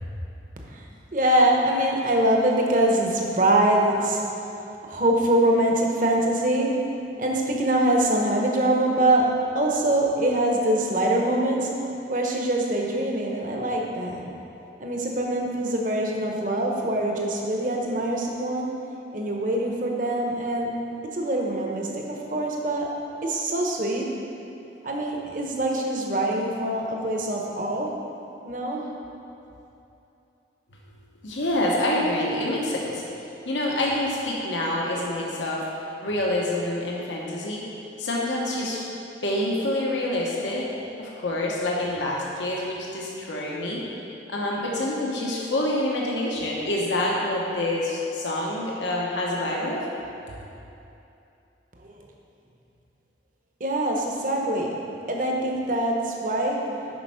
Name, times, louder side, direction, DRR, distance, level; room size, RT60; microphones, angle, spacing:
voice 1, 1.1-4.2 4.8-6.7 7.2-9.3 9.5-11.7 12.1-14.3 14.8-18.7 19.1-20.8 21.1-22.0 22.3-22.9 23.2-24.1 24.8-27.9 28.4-28.8 53.6-54.7 55.1-56.6, right 1 dB, 45° right, -1 dB, 1.0 m, -23 dB
voice 2, 31.2-33.0 33.5-35.7 36.0-37.6 38.0-38.8 39.2-40.7 41.0-43.8 44.3-49.8, left 1 dB, 90° left, -3 dB, 1.1 m, -27 dB
8.0 x 5.3 x 5.6 m, 2.8 s
head